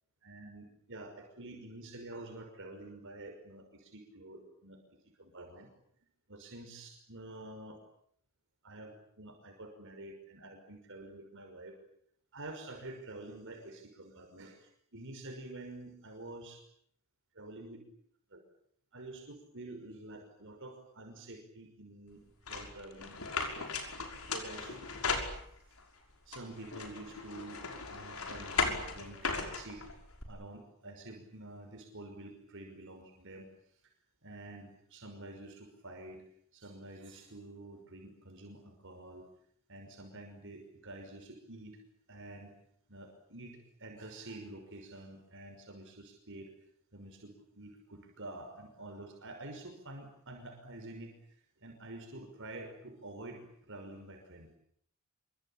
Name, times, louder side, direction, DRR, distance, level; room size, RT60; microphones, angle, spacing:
voice 1, 0.2-4.8 5.2-5.7 6.3-7.8 8.6-11.7 12.3-16.6 17.3-17.8 18.3-18.4 18.9-22.2 22.5-23.7 24.3-24.8 26.3-29.8 30.3-33.5 34.2-36.2 36.5-39.3 39.7-41.8 42.1-42.5 42.9-46.5 46.9-51.1 51.6-54.5, right 2 dB, 60° right, 3 dB, 5.9 m, -48 dB
sound 1, 22.5-25.8 26.3-30.2, left 4 dB, 70° left, 6.0 m, -37 dB
27.0 x 25.0 x 8.9 m, 0.68 s
head